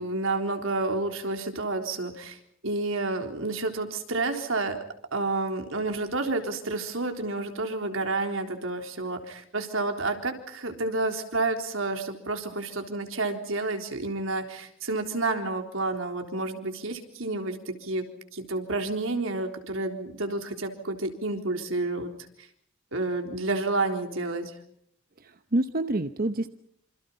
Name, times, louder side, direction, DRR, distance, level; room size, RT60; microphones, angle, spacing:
voice 1, 0.0-2.4 2.6-4.8 5.1-18.0 18.3-22.1 22.9-24.5, right 2 dB, 80° right, 5 dB, 3.8 m, -30 dB
voice 2, 25.2-26.5, right 2 dB, 45° right, 9 dB, 1.0 m, -27 dB
27.0 x 27.0 x 5.7 m, 0.66 s
head